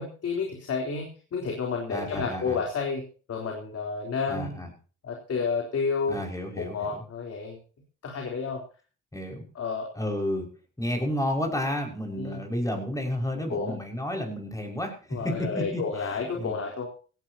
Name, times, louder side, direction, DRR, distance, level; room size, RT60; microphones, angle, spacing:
voice 1, 0.0-4.6 5.0-6.2 6.6-7.6 8.0-8.6 9.5-9.9 12.2-12.4 13.5-13.8 15.1-16.9, left 5 dB, 55° left, 1 dB, 3.9 m, -30 dB
voice 2, 1.9-2.6 4.3-4.7 6.1-7.0 9.1-9.5 10.0-10.5 10.8-15.8 16.1-16.6, left 1 dB, 10° left, 2 dB, 5.8 m, -31 dB
17.0 x 16.5 x 2.9 m, 0.38 s
cardioid pair, 90°, 30 cm